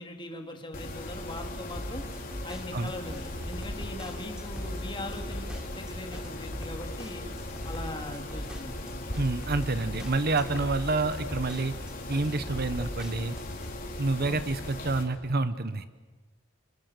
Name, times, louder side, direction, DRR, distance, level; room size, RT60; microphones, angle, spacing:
voice 1, 0.0-2.0 2.4-7.2 7.6-8.9 14.2-14.4, left 1 dB, 25° left, 4 dB, 3.3 m, -41 dB
Mechanisms, 0.7-15.0, left 1 dB, 45° left, 4.1 m, -38 dB
sound 1, 1.7-13.7, equal, 5° right, 3.1 m, -41 dB
voice 2, 9.2-11.7 12.1-13.4 14.0-15.9, right 3 dB, 50° right, 12 dB, 1.1 m, -28 dB
30.0 x 26.5 x 6.9 m, 1.3 s
head